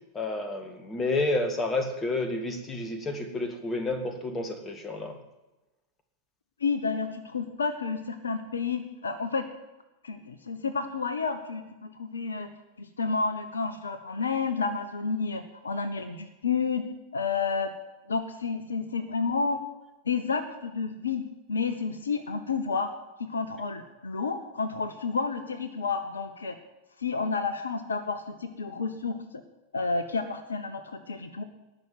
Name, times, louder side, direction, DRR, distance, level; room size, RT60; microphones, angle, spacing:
voice 1, 0.1-5.2, left 2 dB, 20° left, 7 dB, 2.1 m, -30 dB
voice 2, 6.6-9.4 10.0-12.5 12.8-16.8 17.1-17.7 18.1-19.6 20.1-21.2 21.5-22.9 23.3-26.6 27.0-29.2 29.7-31.4, left 4 dB, 70° left, 11 dB, 1.0 m, -30 dB
19.0 x 6.3 x 9.0 m, 1.0 s
figure-of-eight pair, 90°, 0 cm